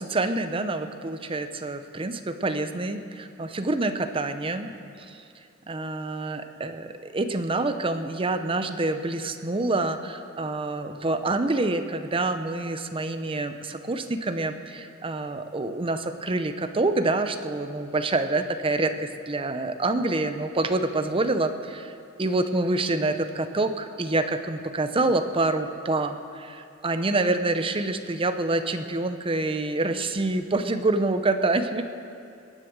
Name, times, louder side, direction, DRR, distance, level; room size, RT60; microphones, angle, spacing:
voice 1, 0.0-4.7 5.0-5.2 5.7-21.9 22.2-31.9, right 2 dB, 25° right, 8 dB, 0.7 m, -27 dB
22.5 x 7.8 x 6.6 m, 2.5 s
head